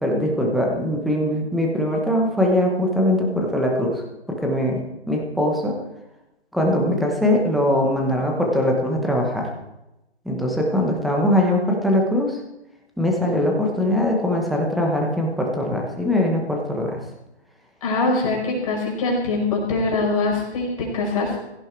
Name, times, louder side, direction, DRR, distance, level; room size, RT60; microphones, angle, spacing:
voice 1, 0.0-4.0 4.3-4.8 5.1-5.7 6.5-9.5 10.2-12.4 13.0-17.0, left 1 dB, ahead, 0 dB, 1.0 m, -21 dB
voice 2, 17.8-21.4, left 3 dB, 30° left, -1 dB, 5.1 m, -23 dB
16.5 x 14.5 x 4.6 m, 0.92 s
hypercardioid pair, 165°, 33 cm